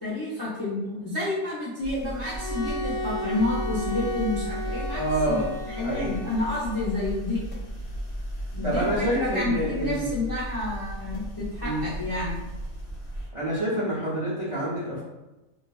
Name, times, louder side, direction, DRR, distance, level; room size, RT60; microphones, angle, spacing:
voice 1, 0.0-7.4 8.5-12.4, left 2 dB, 35° left, -9 dB, 0.3 m, -30 dB
sound 1, 1.8-13.3, equal, 60° left, 0.8 m, -35 dB
Bowed string instrument, 2.2-7.2, left 1 dB, 15° right, 0.8 m, -34 dB
voice 2, 4.9-5.4 5.8-6.2 8.6-10.1 11.6-11.8 13.3-15.0, right 1 dB, 55° right, -10 dB, 0.3 m, -27 dB
2.4 x 2.2 x 2.4 m, 1.0 s
omnidirectional pair, 1.4 m